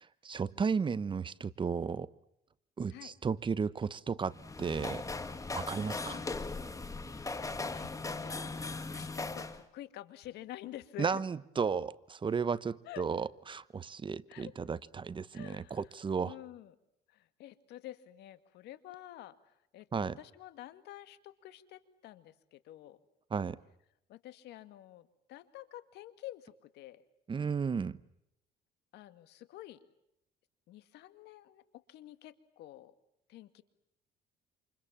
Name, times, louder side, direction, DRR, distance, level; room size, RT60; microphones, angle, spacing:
voice 1, 0.2-2.1 2.8-5.0 5.5-6.2 11.0-16.3 19.9-20.2 23.3-23.6 27.3-28.0, right 5 dB, 30° right, 17 dB, 1.0 m, -34 dB
sound 1, 4.3-9.6, left 3 dB, 20° left, 2.3 m, -39 dB
voice 2, 7.1-11.2 12.8-13.1 14.3-14.5 15.3-15.9 16.3-16.8 17.1-23.0 24.1-27.0 28.9-29.8 30.7-32.9 33.3-33.6, left 13 dB, 80° left, 12 dB, 2.1 m, -49 dB
28.0 x 28.0 x 7.4 m, 0.82 s
cardioid pair, 110°, 17 cm